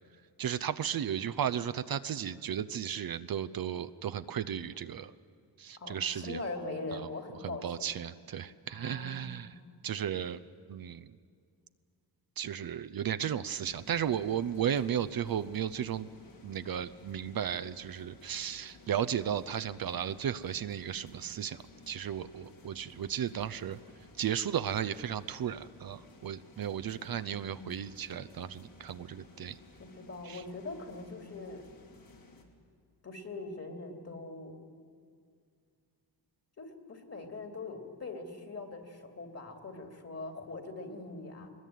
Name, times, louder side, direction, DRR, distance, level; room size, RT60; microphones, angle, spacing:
voice 1, 0.4-5.1 5.6-6.4 6.9-7.1 7.4-9.6 9.8-10.4 10.7-11.1 12.4-16.1 16.4-23.8 24.2-29.6 30.2-30.4, right 9 dB, 55° right, 13 dB, 0.7 m, -34 dB
voice 2, 5.8-7.9 8.7-9.6 27.4-27.8 29.8-31.6 33.0-34.5 36.6-41.5, left 3 dB, 35° left, 4 dB, 3.1 m, -42 dB
sound 1, 13.6-32.4, left 3 dB, 55° left, 3.2 m, -56 dB
21.0 x 20.5 x 9.2 m, 2.2 s
cardioid pair, 100°, 42 cm